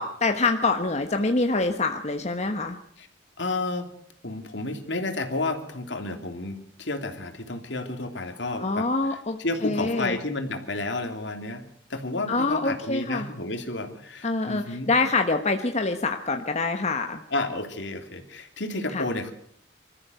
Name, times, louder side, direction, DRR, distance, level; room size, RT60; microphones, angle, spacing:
voice 1, 0.0-2.8 8.6-10.2 12.3-13.3 14.2-17.2 18.9-19.0, left 3 dB, 40° left, 5 dB, 1.2 m, -25 dB
voice 2, 3.4-3.9 4.2-8.9 9.4-11.6 11.9-14.9 17.3-19.3, left 2 dB, 70° left, 5 dB, 3.2 m, -31 dB
26.0 x 14.5 x 8.1 m, 0.66 s
head